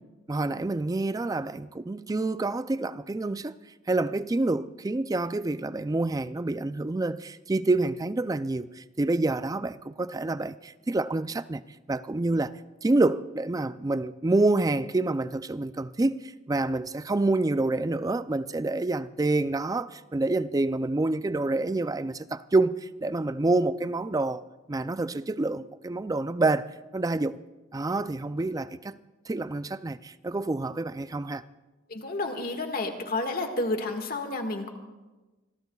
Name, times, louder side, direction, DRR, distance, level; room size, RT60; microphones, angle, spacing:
voice 1, 0.3-3.5 3.9-11.6 11.9-12.5 12.8-24.4 24.7-26.7 26.9-27.4 27.7-29.0 29.3-31.4, right 2 dB, 20° right, 0.4 m, -27 dB
voice 2, 31.9-34.7, left 2 dB, 50° left, 1.7 m, -30 dB
25.5 x 21.5 x 2.3 m
head